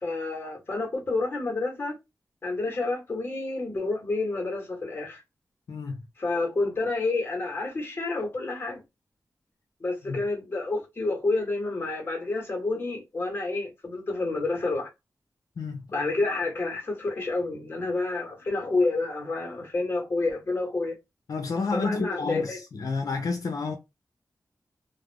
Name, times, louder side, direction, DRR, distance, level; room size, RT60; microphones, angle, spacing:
voice 1, 0.0-2.0 2.4-5.2 6.2-8.8 9.8-14.9 15.9-21.0 21.7-22.6, left 3 dB, 35° left, 1.1 m, -29 dB
voice 2, 5.7-6.0 10.1-10.2 15.6-15.9 21.3-23.8, left 4 dB, 75° left, 0.5 m, -30 dB
2.4 x 2.0 x 3.2 m
wide cardioid pair, 140°, 6 cm